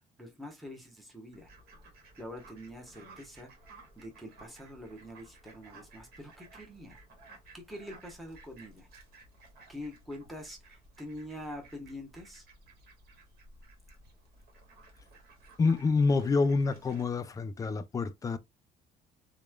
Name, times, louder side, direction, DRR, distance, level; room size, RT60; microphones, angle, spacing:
voice 1, 0.2-1.5 2.2-3.5 4.0-7.0 7.5-8.9 9.7-12.5, left 1 dB, ahead, 0.9 m, -45 dB
Fowl, 1.3-17.0, right 2 dB, 65° right, 1.2 m, -56 dB
voice 2, 15.6-18.4, left 4 dB, 20° left, 0.3 m, -27 dB
3.0 x 2.1 x 2.2 m
cardioid pair, 110°, 17 cm